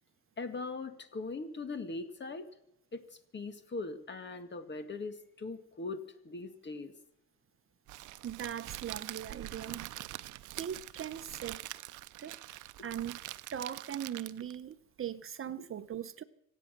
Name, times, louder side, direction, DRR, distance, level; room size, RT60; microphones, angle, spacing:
voice 1, 0.4-2.5 2.9-3.0 3.3-6.9, left 3 dB, 35° left, 1.9 m, -40 dB
Crackle, 7.9-14.6, right 16 dB, 80° right, 0.6 m, -44 dB
voice 2, 8.2-9.9 10.6-11.6 12.2-13.2 13.5-16.2, right 9 dB, 45° right, 0.8 m, -40 dB
25.5 x 8.6 x 6.6 m
cardioid pair, 90°, 30 cm